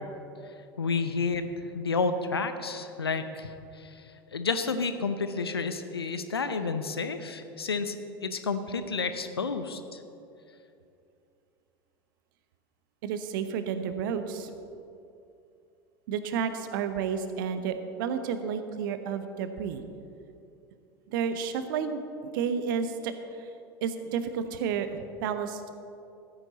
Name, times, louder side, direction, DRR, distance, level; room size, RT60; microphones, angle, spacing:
voice 1, 0.8-1.4 1.7-3.5 4.3-8.0 8.2-10.0, left 4 dB, 80° left, 10 dB, 0.7 m, -30 dB
voice 2, 13.0-14.5 16.1-19.8 21.1-23.5 23.8-25.7, right 7 dB, 60° right, 9 dB, 0.9 m, -31 dB
14.5 x 9.0 x 4.0 m, 2.7 s
figure-of-eight pair, 80°, 13 cm